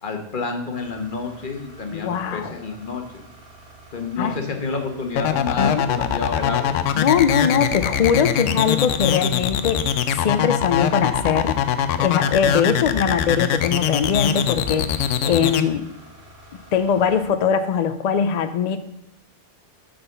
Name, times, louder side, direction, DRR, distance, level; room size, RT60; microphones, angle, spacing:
voice 1, 0.0-3.0 3.9-6.7, left 4 dB, 45° left, 4 dB, 1.2 m, -29 dB
sound 1, 0.7-17.2, equal, 80° right, 2.3 m, -48 dB
voice 2, 1.9-2.5 4.2-4.3 5.6-5.8 6.9-11.6 12.0-15.8 16.7-18.8, left 7 dB, 70° left, 10 dB, 0.4 m, -21 dB
sound 2, 5.2-15.6, left 9 dB, 85° left, 0.9 m, -22 dB
7.5 x 4.1 x 6.7 m, 0.82 s
omnidirectional pair, 1.2 m